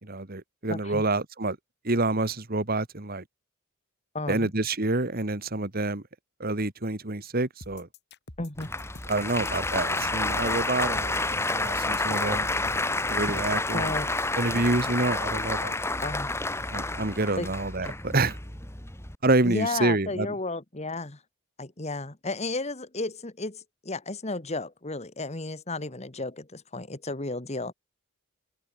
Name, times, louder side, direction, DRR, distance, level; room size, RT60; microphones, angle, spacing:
voice 1, 0.0-1.6 1.8-3.2 4.3-6.0 6.4-7.9 9.1-12.5 13.1-13.9 14.4-15.7 16.7-18.4 19.2-20.3, right 2 dB, 45° right, 1.8 m, -27 dB
voice 2, 0.7-1.0 4.1-4.5 8.4-8.7 13.7-14.1 16.0-16.3 17.4-17.5 17.8-18.0 19.4-21.2 21.6-27.7, left 2 dB, 30° left, 1.6 m, -33 dB
sound 1, 7.6-13.0, left 2 dB, 50° left, 3.6 m, -47 dB
Applause, 8.6-19.2, left 2 dB, 10° left, 2.3 m, -29 dB
head